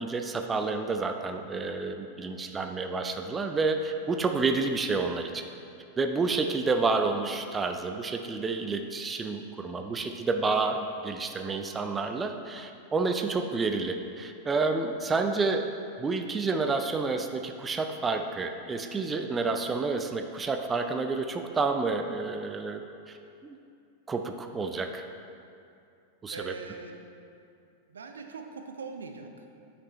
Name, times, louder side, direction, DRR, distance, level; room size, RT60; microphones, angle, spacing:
voice 1, 0.0-5.4 6.0-15.7 16.0-23.2 23.4-23.6 24.1-25.0 26.2-26.5, right 3 dB, 15° right, 6 dB, 0.4 m, -29 dB
voice 2, 26.3-27.1 27.9-29.5, right 4 dB, 70° right, 5 dB, 0.5 m, -42 dB
9.5 x 5.7 x 3.2 m, 2.6 s
figure-of-eight pair, 90°, 0 cm